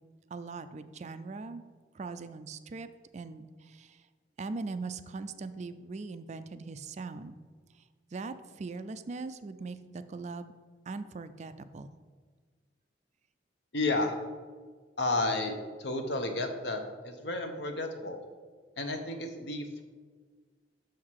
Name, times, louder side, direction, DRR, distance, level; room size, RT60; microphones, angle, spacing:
voice 1, 0.3-1.6 1.9-2.9 3.1-4.0 4.4-7.3 8.1-10.5 10.9-11.9, right 3 dB, 40° right, 11 dB, 0.4 m, -40 dB
voice 2, 13.7-14.2 15.0-18.2 18.8-19.8, left 2 dB, 70° left, 5 dB, 0.9 m, -32 dB
6.4 x 5.7 x 4.7 m, 1.5 s
head